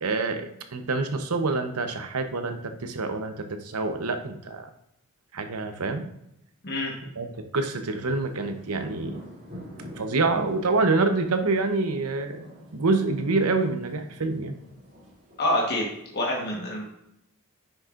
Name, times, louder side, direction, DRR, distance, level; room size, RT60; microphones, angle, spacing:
voice 1, 0.0-4.7 5.3-6.1 7.2-9.2 10.0-12.4 12.7-14.5, right 3 dB, 80° right, 7 dB, 0.8 m, -26 dB
sound 1, 8.0-16.0, left 1 dB, 40° right, 2.7 m, -46 dB
voice 2, 15.4-16.8, left 1 dB, 50° left, -2 dB, 1.3 m, -27 dB
10.0 x 6.4 x 2.5 m, 0.82 s
head